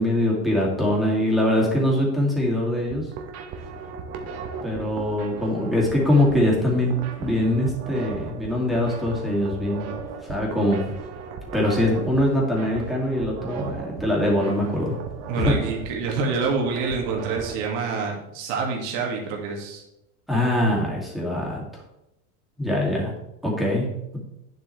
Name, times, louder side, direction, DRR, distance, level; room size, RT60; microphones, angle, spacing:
voice 1, 0.0-3.0 4.6-6.9 7.2-9.9 10.2-10.9 11.5-14.9 15.4-15.5 20.3-21.6 22.6-23.1 23.4-23.9, left 1 dB, ahead, -5 dB, 2.5 m, -23 dB
sound 1, 2.9-17.5, right 5 dB, 45° right, 1.2 m, -37 dB
voice 2, 15.3-19.8, right 4 dB, 60° right, -1 dB, 2.2 m, -27 dB
9.1 x 7.6 x 3.3 m, 0.88 s
supercardioid pair, 140°, 35 cm